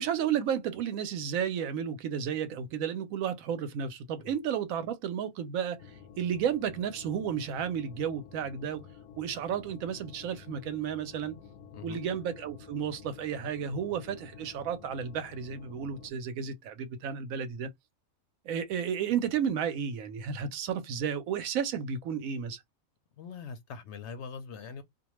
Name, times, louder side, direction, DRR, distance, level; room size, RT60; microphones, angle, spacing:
voice 1, 0.0-5.8 6.2-8.8 9.2-11.4 11.8-17.7 18.4-22.6, right 8 dB, 80° right, 1.0 m, -32 dB
sound 1, 5.8-16.1, left 7 dB, 85° left, 1.0 m, -51 dB
voice 2, 23.2-24.8, left 5 dB, 65° left, 0.7 m, -42 dB
2.4 x 2.2 x 2.9 m
omnidirectional pair, 1.4 m